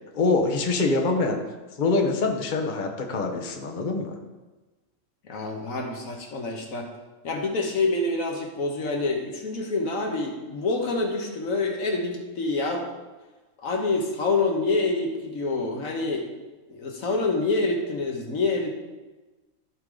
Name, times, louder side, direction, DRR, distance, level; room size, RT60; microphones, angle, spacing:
voice 1, 0.1-1.4 1.8-4.2, left 3 dB, 35° left, 2 dB, 1.1 m, -24 dB
voice 2, 5.2-6.9 7.2-12.9 13.6-16.3 16.7-18.7, left 3 dB, 75° left, 1 dB, 1.6 m, -27 dB
14.0 x 4.8 x 3.9 m, 1.2 s
omnidirectional pair, 1.5 m